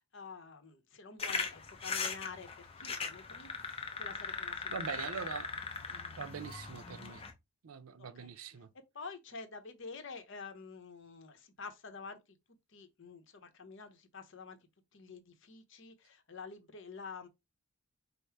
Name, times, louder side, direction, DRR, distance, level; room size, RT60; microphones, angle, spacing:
voice 1, 0.0-4.8 5.2-5.3 8.0-8.4 8.9-12.4 12.7-14.6 14.9-17.3, left 4 dB, 60° left, 0.9 m, -49 dB
sound 1, 1.2-7.3, left 5 dB, 25° left, 0.7 m, -39 dB
voice 2, 4.7-5.5 5.9-7.2 7.6-8.7, right 6 dB, 80° right, 0.5 m, -43 dB
5.3 x 2.1 x 4.6 m
head